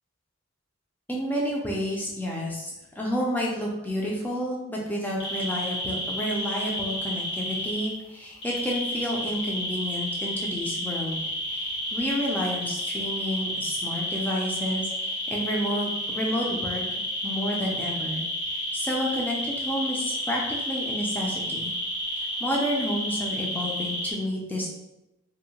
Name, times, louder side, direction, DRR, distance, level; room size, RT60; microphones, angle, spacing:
voice 1, 1.1-21.7 22.1-24.7, equal, 10° left, -3 dB, 0.4 m, -30 dB
sound 1, 5.2-7.9 8.4-24.1, equal, 60° left, 1.0 m, -31 dB
2.7 x 2.1 x 2.8 m, 0.95 s
head